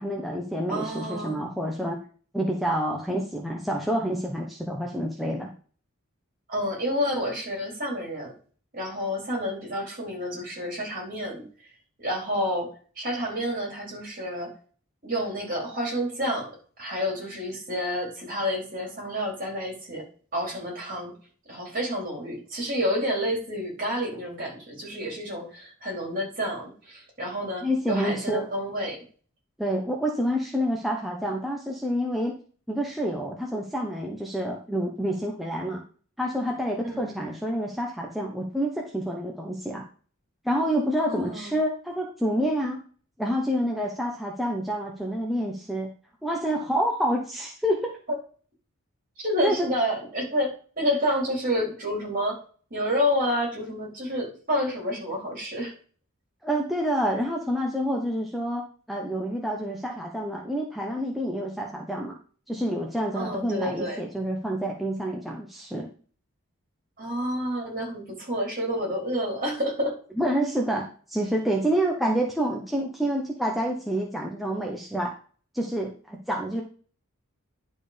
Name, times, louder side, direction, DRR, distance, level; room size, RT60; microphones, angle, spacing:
voice 1, 0.0-2.0 2.3-5.5 27.6-28.5 29.6-32.4 32.7-35.8 36.2-39.8 40.4-42.8 43.2-45.9 46.2-47.9 49.4-49.7 56.4-62.2 62.5-65.9 70.2-75.1 75.5-76.6, equal, ahead, -1 dB, 1.0 m, -28 dB
voice 2, 0.7-1.4 6.5-8.3 8.7-11.5 12.0-12.7 13.0-14.5 15.0-16.5 16.8-20.0 20.3-21.1 21.5-29.0 36.8-37.2 41.1-41.5 48.1-48.2 49.2-52.4 52.7-55.7 63.1-64.0 67.0-70.0, equal, 40° right, -1 dB, 3.9 m, -29 dB
10.5 x 4.4 x 5.1 m, 0.42 s
head